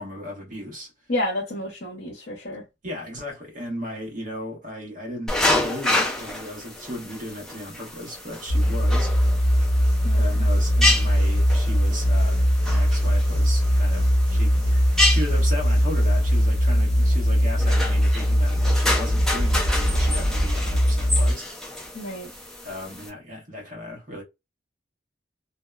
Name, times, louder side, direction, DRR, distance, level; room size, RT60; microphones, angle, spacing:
voice 1, 0.0-0.9 2.8-9.5 10.1-21.5 22.6-24.2, left 1 dB, 45° right, 1.1 m, -36 dB
voice 2, 1.1-2.6 10.0-10.3 21.9-22.3, left 1 dB, 60° left, 0.8 m, -30 dB
sound 1, 5.3-23.1, left 2 dB, 5° left, 0.5 m, -29 dB
sound 2, 8.5-21.3, equal, 90° right, 0.9 m, -20 dB
2.7 x 2.1 x 2.2 m
head